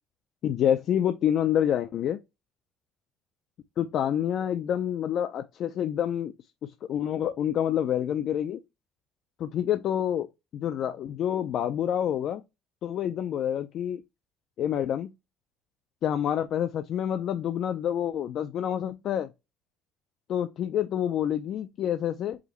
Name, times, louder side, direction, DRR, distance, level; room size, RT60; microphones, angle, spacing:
voice 1, 0.4-2.2 3.8-6.3 6.6-8.6 9.4-10.3 10.5-12.4 12.8-14.0 14.6-15.1 16.0-19.3 20.3-22.4, left 10 dB, 50° left, 0.4 m, -27 dB
4.9 x 2.6 x 3.0 m
cardioid pair, 145°, 0 cm